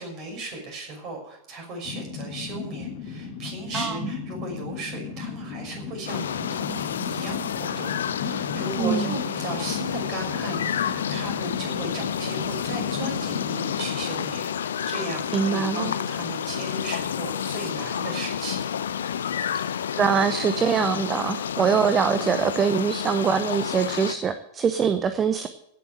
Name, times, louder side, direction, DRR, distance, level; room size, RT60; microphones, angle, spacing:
voice 1, 0.0-18.7, right 2 dB, 40° right, 1 dB, 6.0 m, -36 dB
sound 1, 1.9-14.5, left 5 dB, 45° left, 3.0 m, -36 dB
voice 2, 3.7-4.1 8.8-9.1 15.3-15.9 20.0-25.5, right 6 dB, 25° right, 11 dB, 0.8 m, -23 dB
sound 2, 6.1-24.1, left 8 dB, 65° left, 0.7 m, -30 dB
16.5 x 7.3 x 9.2 m, 0.77 s
figure-of-eight pair, 90°, 0 cm